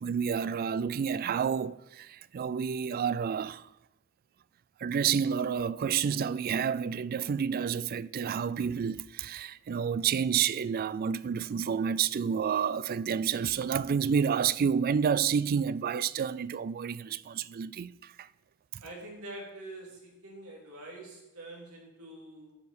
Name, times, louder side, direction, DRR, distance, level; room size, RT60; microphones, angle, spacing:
voice 1, 0.0-3.6 4.8-18.3, right 7 dB, 40° right, 0.3 m, -29 dB
voice 2, 18.8-22.5, right 1 dB, 80° right, 3.3 m, -45 dB
10.5 x 5.4 x 8.2 m
head